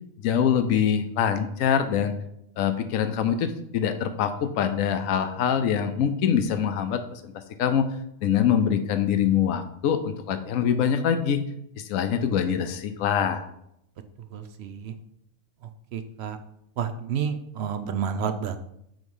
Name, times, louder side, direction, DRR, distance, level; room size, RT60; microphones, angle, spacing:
voice 1, 0.2-2.1 2.6-7.3 7.6-7.9 8.2-11.4 11.8-13.5, left 8 dB, 85° left, 9 dB, 1.1 m, -24 dB
voice 2, 14.3-14.9 15.9-16.4 16.8-18.6, right 7 dB, 65° right, 9 dB, 0.7 m, -30 dB
7.6 x 3.1 x 5.4 m, 0.75 s
omnidirectional pair, 1.4 m